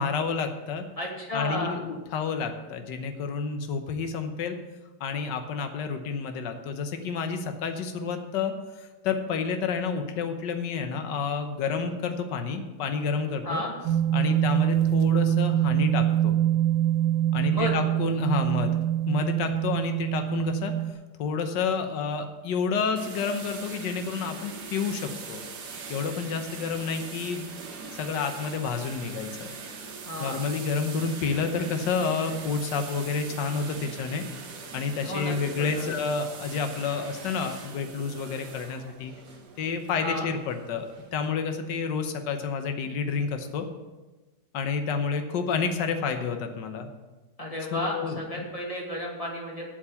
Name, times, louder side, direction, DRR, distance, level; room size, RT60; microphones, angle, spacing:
voice 1, 0.0-0.8 1.3-4.5 5.0-8.5 8.8-13.6 14.1-16.4 17.3-18.8 19.1-20.7 21.2-25.4 25.9-27.5 28.0-29.5 30.2-34.2 34.7-39.1 39.6-40.9 41.1-43.6 44.5-46.9 47.7-48.4, left 5 dB, 70° left, 6 dB, 1.6 m, -29 dB
voice 2, 1.0-1.8 13.4-13.7 17.5-17.7 30.1-30.4 35.0-35.3 35.7-35.8 40.0-40.3 47.4-49.6, left 1 dB, 20° left, -2 dB, 2.3 m, -32 dB
sound 1, 13.8-20.9, right 12 dB, 80° right, 1.3 m, -24 dB
sound 2, 23.0-41.3, right 4 dB, 60° right, 1.8 m, -42 dB
8.6 x 7.9 x 7.2 m, 1.1 s
omnidirectional pair, 2.0 m